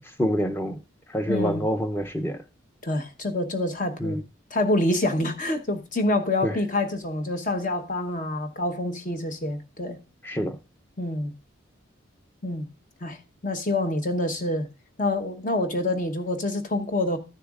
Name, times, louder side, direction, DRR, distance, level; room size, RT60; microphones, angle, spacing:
voice 1, 0.2-0.8 1.1-2.4 4.0-4.2 6.4-6.6 10.2-10.6, equal, 10° left, 0.6 m, -26 dB
voice 2, 1.3-1.6 2.8-4.2 4.5-10.0 11.0-11.3 12.4-12.6 13.0-13.2 13.4-14.7 15.0-17.2, left 1 dB, 40° left, 1.0 m, -26 dB
13.5 x 6.7 x 2.4 m
head